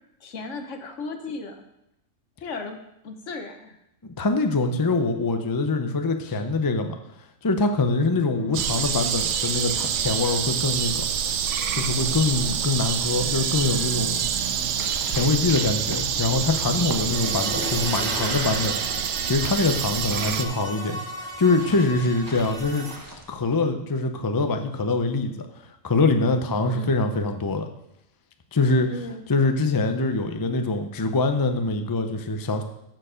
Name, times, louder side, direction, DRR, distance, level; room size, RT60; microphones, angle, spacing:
voice 1, 0.2-1.6 2.4-2.8 3.0-3.8 6.2-6.4 8.3-8.7 20.1-20.5 26.6-26.9 28.9-29.2, left 3 dB, 65° left, 6 dB, 1.3 m, -36 dB
voice 2, 4.0-7.0 7.4-11.1 11.7-14.3 15.1-18.8 19.2-22.9 23.3-25.3 25.8-27.6 28.5-28.9 29.3-32.6, left 3 dB, 30° left, 6 dB, 0.4 m, -24 dB
sound 1, 8.5-20.5, right 8 dB, 70° right, 0.9 m, -27 dB
sound 2, 14.6-23.4, right 1 dB, 15° right, 1.1 m, -42 dB
sound 3, 17.1-23.0, right 1 dB, 40° right, 1.4 m, -35 dB
13.5 x 4.7 x 5.0 m, 0.84 s
omnidirectional pair, 1.4 m